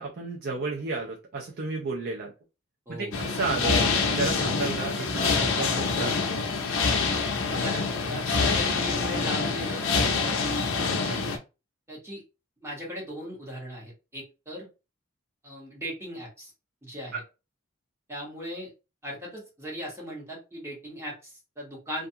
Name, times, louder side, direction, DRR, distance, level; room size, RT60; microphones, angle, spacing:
voice 1, 0.0-2.3 2.9-3.8 4.1-6.2 11.0-11.2, right 3 dB, 50° right, 0 dB, 0.5 m, -32 dB
voice 2, 2.9-3.2 7.5-7.8 8.1-10.6 11.1-11.3 11.9-12.2 12.6-14.7 15.4-16.5 16.8-17.2 18.1-18.7 19.0-22.1, equal, 15° right, -4 dB, 1.2 m, -38 dB
sound 1, 3.1-11.4, left 4 dB, 75° left, 0.6 m, -26 dB
2.5 x 2.3 x 2.7 m, 0.29 s
head